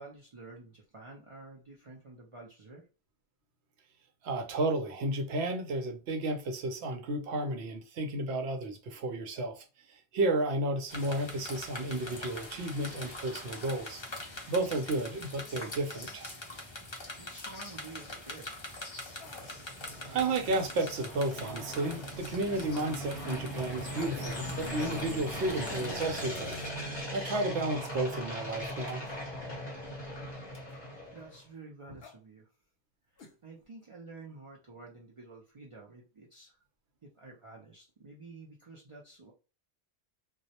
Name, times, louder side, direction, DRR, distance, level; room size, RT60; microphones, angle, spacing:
voice 1, 0.0-2.9 16.8-18.5 31.1-32.5 33.1-36.6 37.0-39.3, right 3 dB, 50° right, 0.3 m, -50 dB
voice 2, 4.2-14.0 14.5-16.3 19.4-19.5 20.0-26.6 26.8-29.1, right 2 dB, 75° right, 0.8 m, -32 dB
sound 1, 10.9-26.7, left 2 dB, 40° left, 0.4 m, -44 dB
sound 2, 19.1-31.4, equal, 25° left, 0.8 m, -40 dB
sound 3, 19.2-19.5 20.5-20.7 21.8-22.0 22.5-22.6 23.9-24.3 25.2-25.5 27.2-27.7 28.9-29.2 30.5-30.8 32.0-32.2 33.2-33.4 33.6-33.7, left 5 dB, 65° left, 0.8 m, -53 dB
2.2 x 2.0 x 2.7 m
omnidirectional pair, 1.2 m